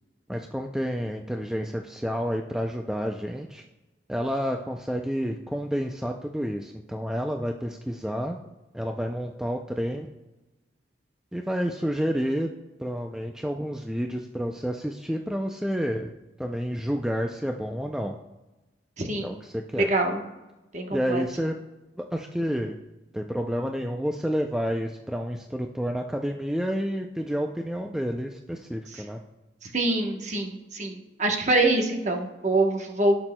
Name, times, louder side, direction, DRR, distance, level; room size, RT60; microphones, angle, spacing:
voice 1, 0.3-3.6 4.1-8.4 8.7-10.1 11.3-12.5 12.8-16.1 16.4-18.1 19.2-19.9 20.9-21.5 22.0-22.7 23.1-29.2, equal, 5° right, 3 dB, 0.3 m, -29 dB
voice 2, 19.0-19.3 19.8-20.2 20.7-21.2 28.9-29.0 29.7-33.2, right 2 dB, 40° right, 2 dB, 1.0 m, -25 dB
16.5 x 6.1 x 2.2 m, 1.1 s
head